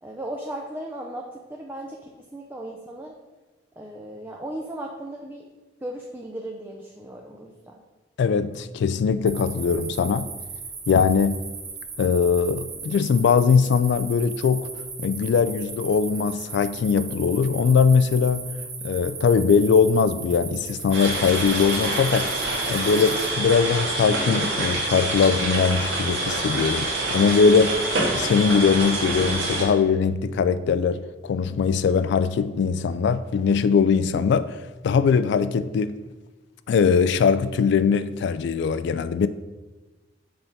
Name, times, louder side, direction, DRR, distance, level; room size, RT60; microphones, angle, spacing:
voice 1, 0.0-3.1 3.8-5.4 5.8-7.7, right 1 dB, 10° right, 0.5 m, -36 dB
voice 2, 8.2-10.3 10.9-11.4 12.0-14.7 15.0-18.5 18.8-22.3 22.7-27.8 28.1-34.5 34.8-36.0 36.7-39.3, left 5 dB, 65° left, 0.3 m, -21 dB
sound 1, 9.3-23.3, right 5 dB, 50° right, 1.4 m, -37 dB
sound 2, 20.9-29.6, right 2 dB, 90° right, 1.5 m, -26 dB
6.9 x 3.6 x 4.0 m
head